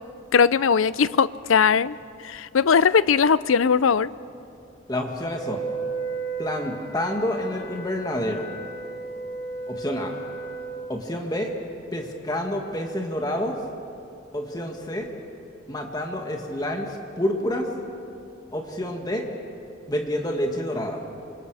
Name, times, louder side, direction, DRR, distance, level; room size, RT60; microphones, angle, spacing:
voice 1, 0.3-2.0 2.2-4.1, left 6 dB, 85° left, 18 dB, 0.5 m, -19 dB
voice 2, 4.9-5.6 6.4-8.5 9.7-10.1 10.9-11.5 11.9-13.6 14.3-15.1 15.7-17.7 18.5-19.3 19.9-21.0, left 1 dB, 20° left, 2 dB, 1.9 m, -28 dB
Wind instrument woodwind instrument, 5.3-10.8, right 4 dB, 35° left, 7.9 m, -34 dB
28.0 x 25.5 x 4.9 m, 2.6 s
head